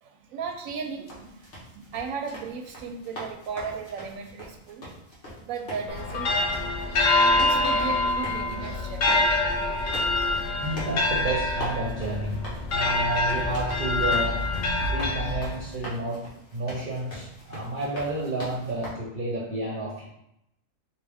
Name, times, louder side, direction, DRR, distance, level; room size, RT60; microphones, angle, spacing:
voice 1, 0.0-4.9 5.4-6.7 7.3-9.2 9.7-9.8 10.3-10.4 10.7-10.9 11.9-12.0 14.8-15.0, right 5 dB, 90° right, 4 dB, 1.0 m, -36 dB
sound 1, 0.7-18.9, equal, 60° left, 1.6 m, -42 dB
sound 2, 5.9-15.8, left 2 dB, 80° left, 0.4 m, -25 dB
voice 2, 10.6-14.5 14.9-20.1, right 2 dB, 45° right, -4 dB, 0.7 m, -31 dB
4.6 x 2.7 x 3.4 m, 0.81 s
omnidirectional pair, 1.4 m